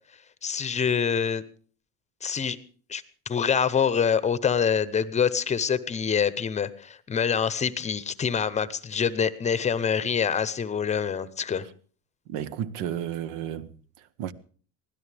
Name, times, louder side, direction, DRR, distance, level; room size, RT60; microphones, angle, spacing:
voice 1, 0.4-1.4 2.2-2.6 2.9-11.7, left 7 dB, 20° left, 0.8 m, -25 dB
voice 2, 12.3-14.3, right 10 dB, 80° right, 1.3 m, -33 dB
24.0 x 16.5 x 3.4 m
cardioid pair, 155°, 32 cm